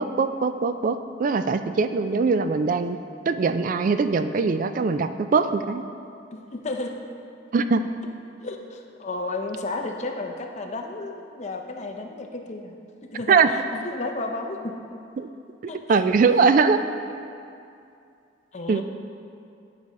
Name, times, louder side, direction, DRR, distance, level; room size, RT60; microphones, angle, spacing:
voice 1, 0.0-3.0 3.3-5.8 7.5-7.8 13.3-13.5 15.2-15.3 15.9-16.8 18.7-18.8, right 4 dB, 45° right, 10 dB, 0.3 m, -21 dB
voice 2, 6.3-7.0 8.4-12.8 13.1-13.4 13.8-14.7 15.7-16.0 18.5-18.8, left 2 dB, 35° left, 3 dB, 0.6 m, -32 dB
10.5 x 4.9 x 4.2 m, 2.5 s
head